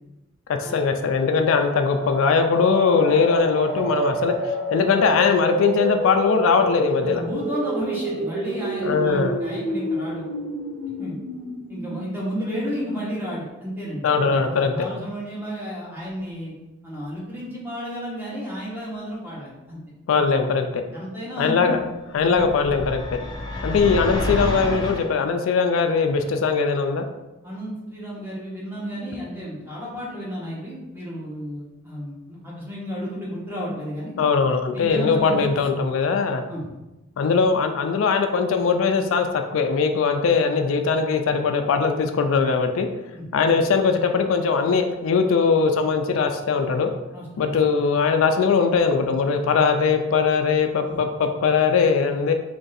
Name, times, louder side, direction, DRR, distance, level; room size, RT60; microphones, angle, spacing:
voice 1, 0.5-7.2 8.8-9.3 14.0-14.9 20.1-20.8 21.4-21.8 22.1-23.2 23.6-27.0 34.2-36.4 37.2-42.9 43.3-46.9 47.4-52.3, left 5 dB, 80° left, 6 dB, 0.3 m, -20 dB
sound 1, 1.6-13.2, right 1 dB, 75° right, 0.8 m, -29 dB
voice 2, 7.0-10.3 11.0-11.1 11.7-14.1 14.5-16.5 16.8-19.8 20.9-21.9 22.3-22.4 27.4-34.1 34.7-35.4 36.5-36.7 43.1-43.3 47.1-47.5 50.9-51.0, equal, 10° right, -5 dB, 0.9 m, -32 dB
sound 2, 22.2-25.1, left 1 dB, 20° left, 0.5 m, -29 dB
3.2 x 2.6 x 3.9 m, 1.0 s
head